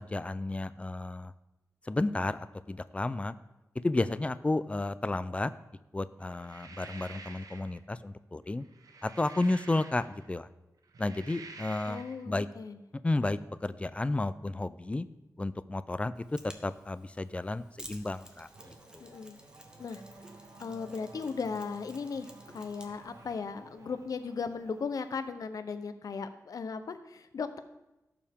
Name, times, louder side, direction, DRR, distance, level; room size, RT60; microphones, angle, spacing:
voice 1, 0.0-1.3 1.9-3.3 3.8-5.5 5.9-8.6 9.0-10.5 11.0-12.0 12.3-12.5 13.0-15.1 15.4-16.2 16.6-18.5 18.9-19.0, left 2 dB, 20° left, 14 dB, 0.4 m, -32 dB
sound 1, 6.3-7.8 8.6-10.3 10.8-12.2, right 4 dB, 85° right, 0.9 m, -49 dB
voice 2, 11.9-12.8 19.0-19.4 19.8-20.0 20.6-27.6, left 5 dB, 85° left, 10 dB, 0.8 m, -37 dB
Mechanisms, 16.1-23.4, right 1 dB, 15° right, 1.2 m, -54 dB
Race car auto racing / Accelerating revving vroom, 18.0-25.3, right 2 dB, 65° right, 1.5 m, -54 dB
17.0 x 7.1 x 3.6 m, 0.97 s
wide cardioid pair, 130°, 6 cm